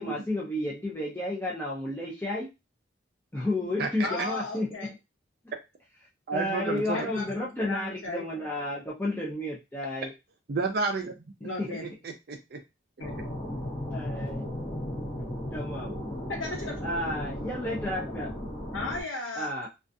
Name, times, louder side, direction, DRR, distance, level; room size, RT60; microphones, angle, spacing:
voice 1, 0.0-2.5 3.3-4.7 6.3-10.1 11.6-11.7 13.9-14.5 15.5-16.0 16.8-18.3 19.4-19.7, left 1 dB, 10° left, -5 dB, 0.4 m, -32 dB
voice 2, 4.0-4.9 6.5-8.3 11.4-11.9 13.0-13.2 16.3-17.3 18.7-19.5, left 2 dB, 85° left, 0 dB, 1.0 m, -36 dB
voice 3, 6.3-7.1 10.5-11.1 12.0-12.6, right 3 dB, 50° right, 5 dB, 0.4 m, -30 dB
sound 1, 13.0-19.0, left 1 dB, 25° left, 0.9 m, -35 dB
2.3 x 2.3 x 2.5 m, 0.24 s
head